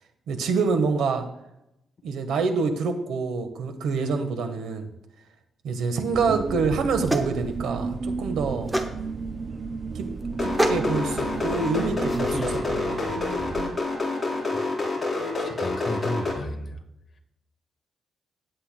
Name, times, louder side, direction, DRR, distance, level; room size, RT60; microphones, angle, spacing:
voice 1, 0.3-1.3 2.0-4.9 5.6-8.7 9.9-10.1 10.4-13.2, right 4 dB, 85° right, 7 dB, 1.3 m, -26 dB
sound 1, 6.1-13.8, right 4 dB, 35° right, 0.5 m, -33 dB
sound 2, 6.5-12.6, right 1 dB, 10° right, 1.0 m, -31 dB
sound 3, 10.3-16.3, left 3 dB, 10° left, 3.7 m, -27 dB
voice 2, 15.4-16.8, left 1 dB, 35° left, 2 dB, 1.5 m, -32 dB
18.5 x 8.1 x 2.2 m, 0.85 s
cardioid pair, 125°, 0 cm